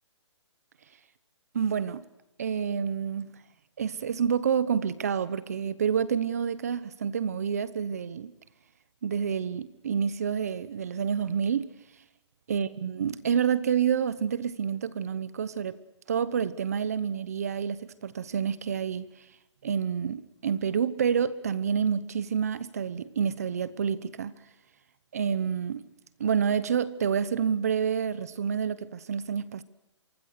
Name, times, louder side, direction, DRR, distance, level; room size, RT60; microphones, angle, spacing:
voice 1, 1.5-2.0 2.4-3.3 3.8-8.3 9.0-11.7 12.5-15.8 16.1-19.1 19.6-24.4 25.1-25.9 26.2-29.6, right 7 dB, 30° right, 0.9 m, -28 dB
27.0 x 24.5 x 6.6 m
hypercardioid pair, 180°, 15 cm